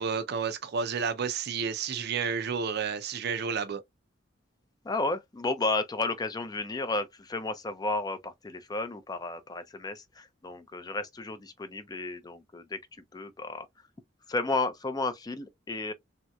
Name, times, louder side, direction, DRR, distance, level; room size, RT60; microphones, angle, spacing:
voice 1, 0.0-3.8, right 6 dB, 60° right, 0.5 m, -31 dB
voice 2, 4.8-12.8 13.1-13.7 14.3-15.9, left 3 dB, 20° left, 0.4 m, -32 dB
3.1 x 2.8 x 2.2 m
head